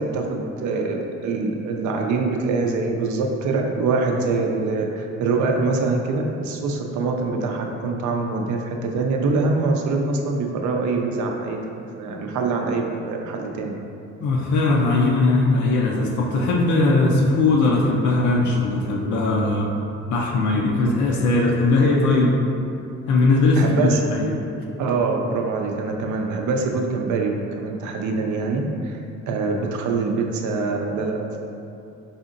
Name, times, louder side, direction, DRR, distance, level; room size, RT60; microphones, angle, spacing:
voice 1, 0.0-11.6 12.0-13.7 23.6-24.0 24.8-29.0 29.3-31.4, right 3 dB, 75° right, 2 dB, 0.5 m, -24 dB
voice 2, 14.2-19.7 20.1-22.4 23.1-24.3, left 2 dB, 75° left, -2 dB, 0.5 m, -19 dB
4.2 x 2.8 x 2.5 m, 2.7 s
cardioid pair, 90°, 30 cm